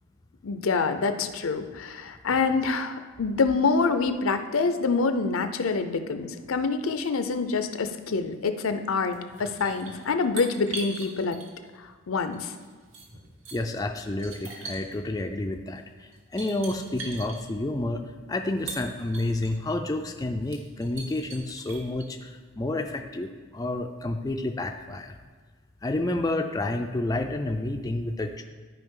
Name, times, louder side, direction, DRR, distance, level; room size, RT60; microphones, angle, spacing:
voice 1, 0.4-11.4 11.8-12.5, left 4 dB, 70° left, 9 dB, 0.5 m, -26 dB
sound 1, 8.9-11.8 12.3-13.6 14.1-15.0 15.8-15.9 16.1-17.4 18.4-19.5 20.0-20.1 20.4-22.0, right 4 dB, 70° right, 1.5 m, -41 dB
voice 2, 13.5-18.0 18.3-25.2 25.8-28.4, left 2 dB, 15° left, 4 dB, 0.3 m, -30 dB
12.5 x 5.0 x 3.7 m, 1.4 s
head